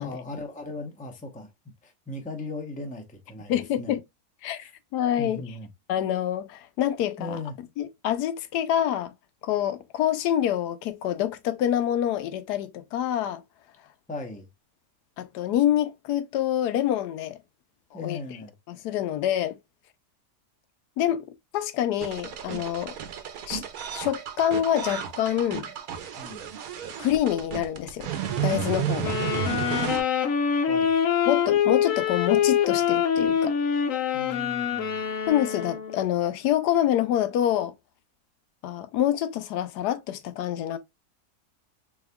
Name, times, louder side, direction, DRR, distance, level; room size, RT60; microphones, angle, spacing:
voice 1, 0.0-1.5 1.8-4.0 4.6-4.7 5.2-5.7 7.2-7.5 14.1-14.5 17.9-18.5 26.2-26.5 30.7-30.9 34.1-35.0, left 2 dB, 10° left, 0.5 m, -37 dB
voice 2, 3.5-4.0 4.4-5.4 5.9-7.4 7.8-9.1 9.4-13.4 15.2-17.4 17.9-18.2 18.7-19.6 21.0-21.2 21.5-22.9 23.5-23.6 23.9-25.7 27.0-28.1 28.4-29.1 31.3-33.5 35.3-37.7 38.6-40.8, left 11 dB, 85° left, 1.2 m, -26 dB
sound 1, 22.0-30.0, right 8 dB, 70° right, 1.2 m, -32 dB
sound 2, 29.0-36.1, left 8 dB, 60° left, 1.0 m, -25 dB
4.1 x 3.5 x 2.2 m
omnidirectional pair, 1.7 m